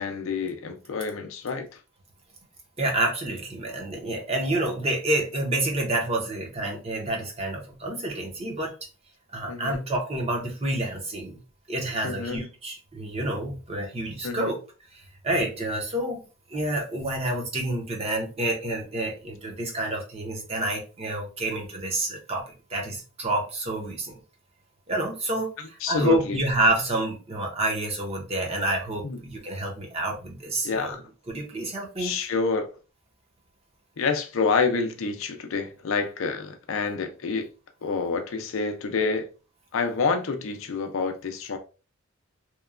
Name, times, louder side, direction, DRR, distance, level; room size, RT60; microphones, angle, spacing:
voice 1, 0.0-1.7 9.5-9.9 12.0-12.4 14.2-14.5 25.8-26.4 29.0-29.2 30.6-31.0 32.0-32.7 34.0-37.5 37.8-39.3 39.7-41.6, left 4 dB, 70° left, 0.5 m, -27 dB
voice 2, 2.8-8.7 9.3-11.4 11.7-14.6 14.9-16.2 16.5-24.2 24.9-31.0 31.3-32.1, right 1 dB, 30° right, 0.7 m, -28 dB
2.9 x 2.2 x 2.4 m
head